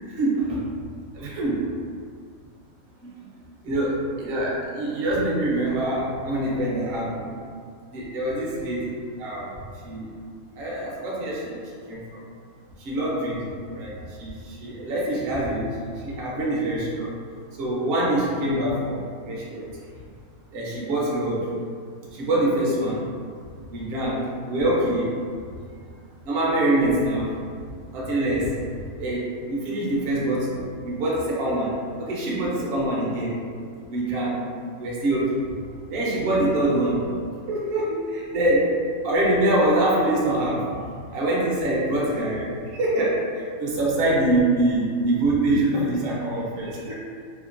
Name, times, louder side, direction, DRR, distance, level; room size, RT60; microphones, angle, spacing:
voice 1, 0.2-0.7 1.1-1.7 3.0-3.1 3.6-7.4 7.9-9.5 9.8-10.1 10.6-11.6 11.9-12.2 12.8-17.1 17.6-19.7 20.5-21.5 22.1-23.1 23.7-25.2 26.2-27.3 27.7-28.6 29.0-33.4 33.9-34.4 34.8-35.4 35.9-37.1 37.5-40.8 41.1-47.0, right 1 dB, 60° right, -5 dB, 0.7 m, -25 dB
2.8 x 2.1 x 2.4 m, 2.1 s
omnidirectional pair, 1.5 m